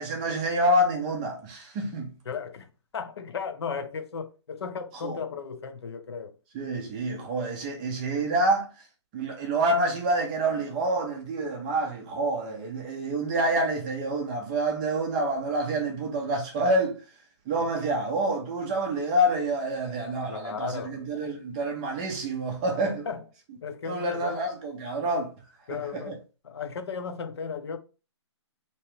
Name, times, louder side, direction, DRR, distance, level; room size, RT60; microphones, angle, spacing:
voice 1, 0.0-2.1 5.0-5.2 6.5-8.7 9.1-17.0 17.5-23.1 23.9-25.3 25.7-26.1, right 1 dB, 15° right, 0.4 m, -27 dB
voice 2, 2.3-6.3 17.6-17.7 20.3-21.0 23.0-23.2 23.6-24.4 25.7-27.8, left 6 dB, 65° left, 0.6 m, -35 dB
3.3 x 2.9 x 3.1 m
hypercardioid pair, 165°, 15 cm